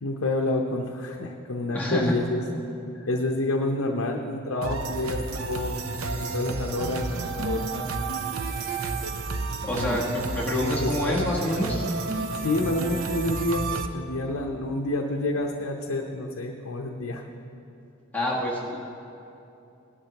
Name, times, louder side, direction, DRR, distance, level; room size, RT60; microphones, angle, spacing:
voice 1, 0.0-2.4 3.1-5.9 6.2-7.9 9.7-10.0 10.5-11.3 12.3-17.2, left 2 dB, 65° left, 0 dB, 0.7 m, -28 dB
voice 2, 1.7-2.2 2.9-3.0 9.6-11.8 18.1-18.8, left 1 dB, 10° left, -5 dB, 1.4 m, -27 dB
sound 1, 4.6-13.9, right 3 dB, 80° right, 0.7 m, -31 dB
18.5 x 11.0 x 2.9 m, 2.8 s
head